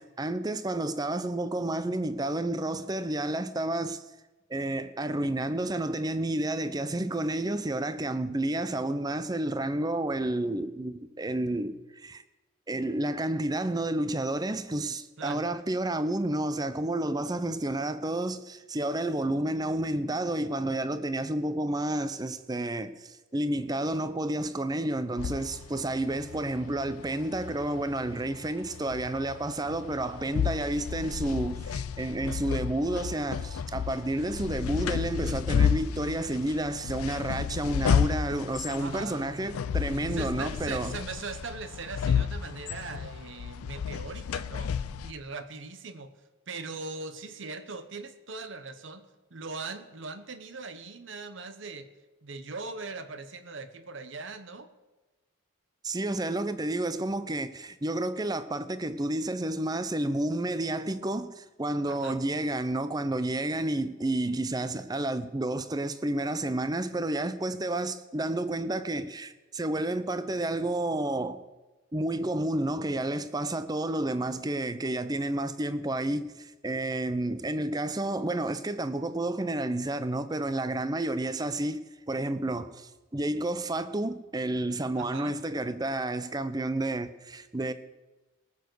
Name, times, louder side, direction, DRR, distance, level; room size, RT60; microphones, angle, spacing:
voice 1, 0.0-4.0 4.5-12.2 12.7-40.9 55.8-71.4 71.9-87.7, right 1 dB, 20° right, 0.5 m, -30 dB
sound 1, 25.2-45.1, left 7 dB, 90° left, 0.4 m, -32 dB
voice 2, 38.8-39.2 40.1-46.1 46.5-49.0 49.3-51.9 52.2-54.7 61.8-62.2 85.0-85.4, right 3 dB, 60° right, 1.0 m, -40 dB
19.0 x 7.1 x 6.3 m
head